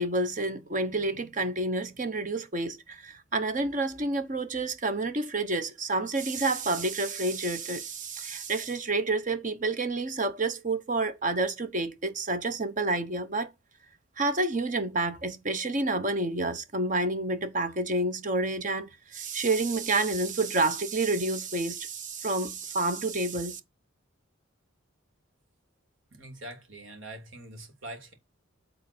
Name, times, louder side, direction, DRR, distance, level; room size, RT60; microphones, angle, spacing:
voice 1, 0.0-13.5 14.2-23.6, right 2 dB, 40° right, 1.0 m, -29 dB
voice 2, 26.1-28.1, right 1 dB, 80° right, 2.8 m, -43 dB
9.1 x 3.9 x 6.1 m
head